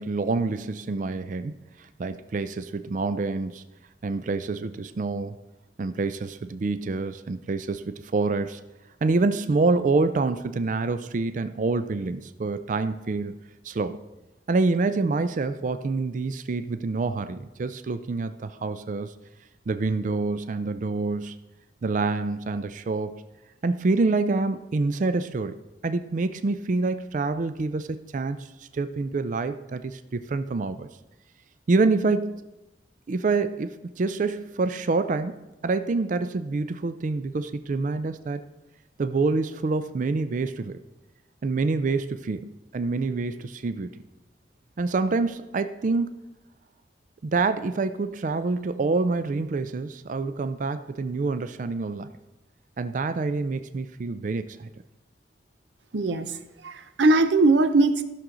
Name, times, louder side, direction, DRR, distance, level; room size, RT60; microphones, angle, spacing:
voice 1, 0.0-1.5 1.8-3.6 4.0-5.4 5.8-8.6 9.0-13.4 13.6-14.0 14.5-19.1 19.7-21.4 21.8-23.2 23.6-30.9 31.7-32.4 33.1-38.4 39.0-40.8 41.4-44.0 44.8-46.2 47.2-52.1 52.8-54.7, right 3 dB, 45° right, 11 dB, 0.4 m, -27 dB
voice 2, 55.9-56.4 56.6-58.0, right 2 dB, 85° right, 11 dB, 0.7 m, -20 dB
15.5 x 6.2 x 3.8 m, 1.0 s
head